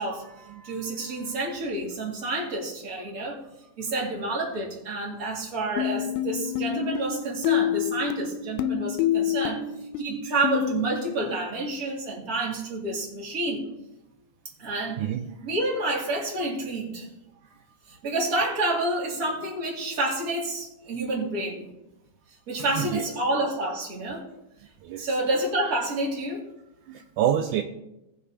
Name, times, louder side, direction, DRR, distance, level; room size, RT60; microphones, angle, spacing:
voice 1, 0.0-3.4 3.8-9.6 10.0-13.6 14.6-15.0 15.4-17.1 17.9-21.7 22.5-24.3 25.0-26.4, right 2 dB, 30° right, -2 dB, 2.1 m, -29 dB
sound 1, 5.8-10.8, left 11 dB, 85° left, 2.1 m, -28 dB
voice 2, 26.9-27.6, right 10 dB, 80° right, 5 dB, 1.9 m, -27 dB
18.5 x 6.2 x 2.8 m, 0.92 s
omnidirectional pair, 3.8 m